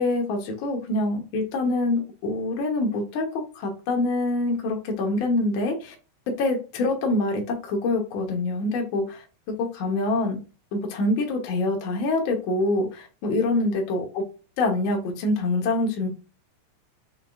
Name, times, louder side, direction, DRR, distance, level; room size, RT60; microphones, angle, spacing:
voice 1, 0.0-5.9 6.4-10.4 10.7-14.2 14.6-16.1, left 2 dB, 80° left, 2 dB, 1.1 m, -25 dB
6.5 x 2.3 x 2.4 m, 0.34 s
omnidirectional pair, 3.6 m